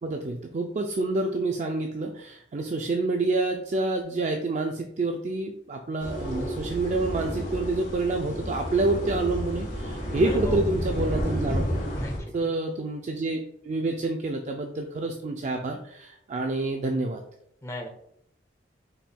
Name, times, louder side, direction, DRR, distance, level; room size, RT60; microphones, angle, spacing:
voice 1, 0.0-11.6 12.3-13.4 13.6-17.2, right 2 dB, 40° right, 3 dB, 0.4 m, -28 dB
sound 1, 6.0-12.2, equal, 50° left, 1.5 m, -30 dB
voice 2, 10.3-10.6 12.0-12.5 17.6-17.9, left 1 dB, 15° left, 2 dB, 0.8 m, -35 dB
5.3 x 4.4 x 2.2 m, 0.75 s
head